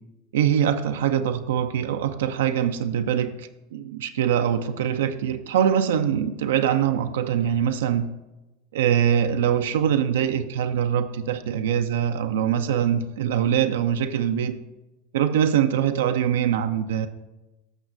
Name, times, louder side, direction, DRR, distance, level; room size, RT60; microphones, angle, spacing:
voice 1, 0.3-8.1 8.7-14.5 15.1-17.1, right 9 dB, 70° right, 8 dB, 0.5 m, -23 dB
14.5 x 6.1 x 2.6 m, 1.0 s
figure-of-eight pair, 85°, 0 cm